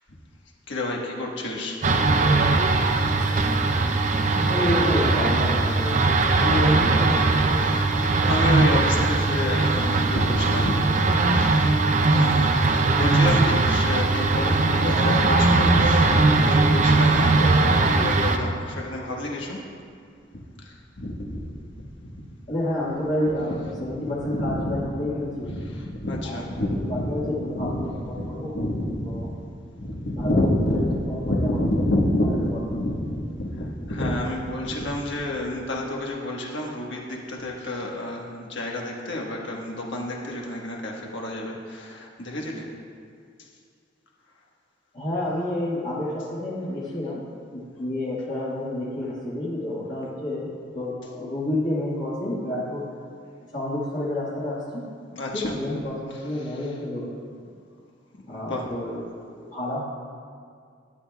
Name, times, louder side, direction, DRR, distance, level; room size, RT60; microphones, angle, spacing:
voice 1, 0.7-1.8 2.8-2.9 6.4-6.7 7.5-19.6 20.6-21.5 21.8-22.2 24.3-24.9 25.4-27.2 27.6-27.8 28.1-29.3 29.8-42.6 55.1-55.6 56.4-56.5 58.3-58.7, left 1 dB, 75° left, -1 dB, 1.4 m, -29 dB
sound 1, 1.8-18.4, right 3 dB, 40° right, 0.5 m, -20 dB
voice 2, 4.5-6.0 6.4-7.1 14.8-15.0 18.0-18.1 22.5-25.5 26.2-26.4 26.8-28.5 29.0-29.3 30.1-31.6 32.5-32.6 44.9-47.2 47.5-52.9 53.4-54.9 55.3-57.1 58.3-59.8, left 1 dB, 45° left, -8 dB, 1.6 m, -29 dB
12.5 x 9.7 x 2.3 m, 2.2 s
head